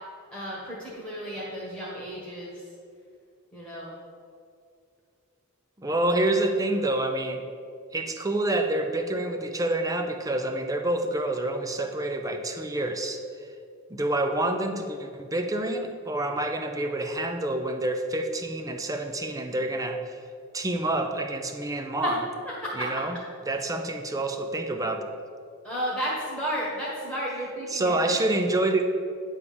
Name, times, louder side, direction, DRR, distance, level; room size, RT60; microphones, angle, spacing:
voice 1, 0.3-2.6 3.5-3.9 22.0-22.1 22.8-22.9 23.5-23.6 25.6-28.1, equal, 5° left, -7 dB, 1.4 m, -33 dB
voice 2, 5.8-7.4 7.9-13.2 13.9-20.2 20.5-22.2 22.7-23.2 23.5-25.0 27.7-28.8, right 2 dB, 15° right, 6 dB, 0.6 m, -27 dB
9.6 x 3.6 x 6.9 m, 2.3 s
head